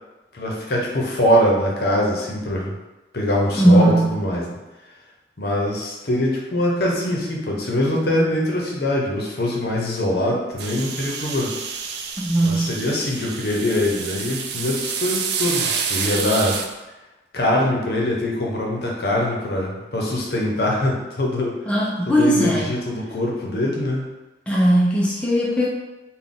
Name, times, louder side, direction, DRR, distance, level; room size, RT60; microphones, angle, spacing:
voice 1, 0.3-2.7 3.1-4.5 5.4-11.5 12.4-16.6 17.3-21.6 22.1-24.1, left 1 dB, 60° left, -2 dB, 0.8 m, -23 dB
voice 2, 3.6-4.1 12.2-12.7 21.7-22.7 24.5-25.7, right 1 dB, 5° left, -5 dB, 0.4 m, -18 dB
sound 1, 10.6-16.7, right 6 dB, 70° right, 0.4 m, -28 dB
3.9 x 2.2 x 3.6 m, 1.1 s
head